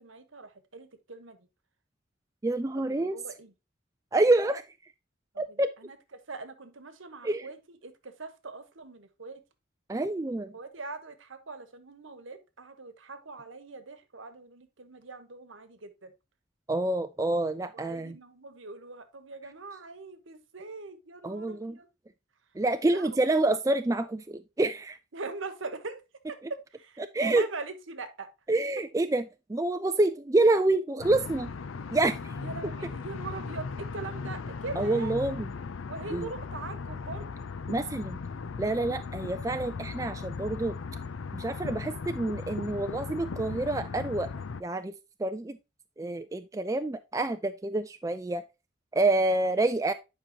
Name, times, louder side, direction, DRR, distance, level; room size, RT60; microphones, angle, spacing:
voice 1, 0.0-1.4 2.8-3.5 5.3-9.4 10.5-16.1 17.7-21.9 22.9-23.3 25.1-26.0 26.3-28.3 32.4-35.4 35.9-37.3, right 3 dB, 75° right, 1.2 m, -42 dB
voice 2, 2.4-3.2 4.1-4.6 5.4-5.7 7.2-7.5 9.9-10.5 16.7-18.1 21.2-21.8 22.6-25.0 27.1-27.4 28.5-29.2 29.5-31.5 31.9-32.2 34.8-35.5 36.1-36.3 37.7-38.2 38.6-40.8 41.3-44.3 44.6-44.9 45.2-45.6 46.0-48.4 48.9-49.9, right 2 dB, 15° right, 0.3 m, -27 dB
sound 1, 31.0-44.6, left 4 dB, 80° left, 0.5 m, -38 dB
9.8 x 5.3 x 2.9 m
head